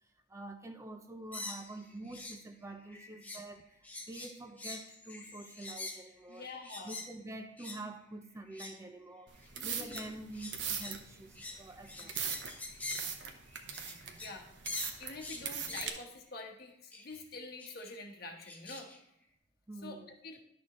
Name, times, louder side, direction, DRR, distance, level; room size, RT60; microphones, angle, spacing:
voice 1, 0.0-6.5 6.8-12.2 19.7-20.1, right 2 dB, 15° right, 0.5 m, -47 dB
sound 1, 1.3-2.4 2.7-3.5 3.8-7.1 7.6-7.8 8.4-8.9 9.4-14.4 14.6-16.0 16.9-17.2 17.6-17.9 18.4-19.0, left 2 dB, 10° left, 0.9 m, -45 dB
voice 2, 6.3-7.0 9.5-9.9 14.2-14.5 15.0-18.9 19.8-20.4, left 3 dB, 55° left, 1.2 m, -46 dB
sound 2, 9.3-15.9, right 7 dB, 70° right, 0.9 m, -40 dB
11.5 x 6.3 x 3.0 m
head